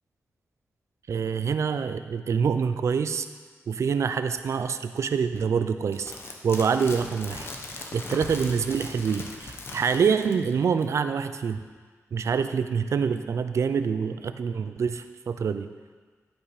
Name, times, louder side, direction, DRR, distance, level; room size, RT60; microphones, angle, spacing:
voice 1, 1.1-3.3 3.7-6.1 6.4-7.5 7.9-11.6 12.1-15.7, right 6 dB, 65° right, 10 dB, 0.5 m, -26 dB
sound 1, 5.9-10.5 10.8-10.9, left 2 dB, 50° left, 1.1 m, -39 dB
11.0 x 5.6 x 4.9 m, 1.5 s
wide cardioid pair, 90°, 5 cm